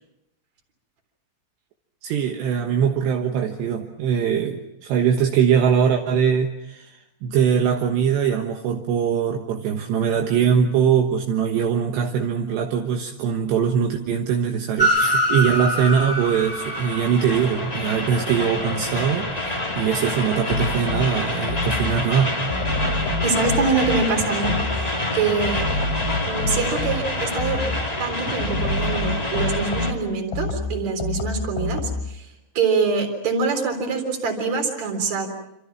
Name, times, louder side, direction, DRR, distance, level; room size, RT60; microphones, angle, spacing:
voice 1, 2.0-22.3, right 7 dB, 75° right, 3 dB, 3.4 m, -22 dB
Train, 14.8-29.9, left 1 dB, 15° left, 1.7 m, -26 dB
sound 1, 20.5-22.0 22.5-25.0 25.4-27.9 28.4-32.2, left 2 dB, 60° left, 3.9 m, -27 dB
voice 2, 23.2-25.6 26.3-27.6 28.0-32.3 32.5-35.3, right 4 dB, 40° right, 5 dB, 4.5 m, -24 dB
28.0 x 27.0 x 6.0 m, 0.83 s
omnidirectional pair, 5.3 m